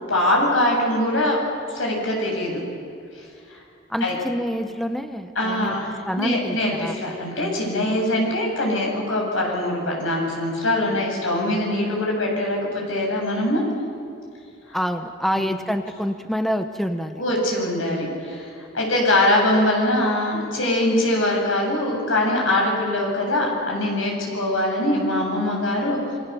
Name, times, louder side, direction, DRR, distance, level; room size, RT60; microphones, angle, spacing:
voice 1, 0.1-2.6 3.1-3.2 3.5-3.6 4.0-4.2 5.3-13.6 14.7-14.8 15.3-15.4 17.1-26.0, left 1 dB, 85° left, -1 dB, 7.9 m, -23 dB
voice 2, 3.9-5.7 6.1-6.9 14.7-17.2, equal, ahead, 7 dB, 0.8 m, -27 dB
27.5 x 23.5 x 7.0 m, 2.5 s
head